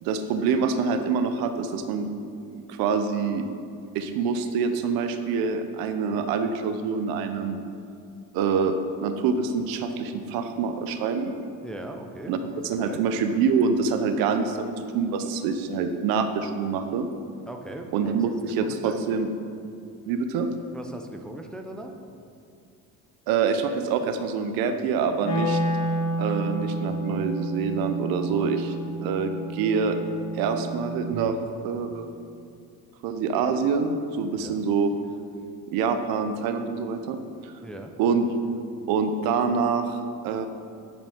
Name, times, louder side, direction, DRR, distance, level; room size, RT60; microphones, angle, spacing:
voice 1, 0.0-2.1 2.7-3.4 3.9-7.6 8.3-8.7 9.0-11.3 12.3-12.4 12.6-17.1 17.9-19.3 20.1-20.5 23.3-25.6 26.2-28.7 29.0-30.0 30.3-31.4 31.6-32.1 33.0-34.9 35.7-37.2 37.4-37.5 38.0-38.3 38.9-40.5, right 5 dB, 85° right, 8 dB, 0.7 m, -26 dB
voice 2, 11.6-13.0 17.5-18.1 18.6-19.0 20.7-21.9 34.3-34.6 37.6-37.9, right 1 dB, ahead, 3 dB, 0.3 m, -39 dB
Wind instrument woodwind instrument, 25.2-31.3, right 1 dB, 50° left, 1.8 m, -30 dB
10.5 x 5.0 x 3.6 m, 2.4 s
cardioid pair, 135°, 35 cm